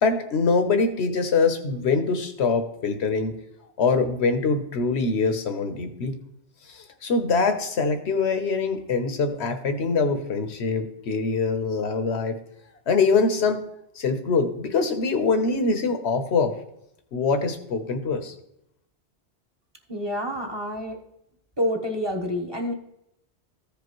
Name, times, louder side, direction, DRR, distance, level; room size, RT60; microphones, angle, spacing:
voice 1, 0.0-3.3 3.8-6.1 6.6-12.4 12.9-13.6 13.9-16.5 17.1-18.3, left 4 dB, 75° left, 7 dB, 1.2 m, -24 dB
voice 2, 19.9-21.0 21.6-22.7, equal, 25° right, 0 dB, 1.2 m, -28 dB
14.5 x 5.1 x 3.1 m, 0.80 s
omnidirectional pair, 1.1 m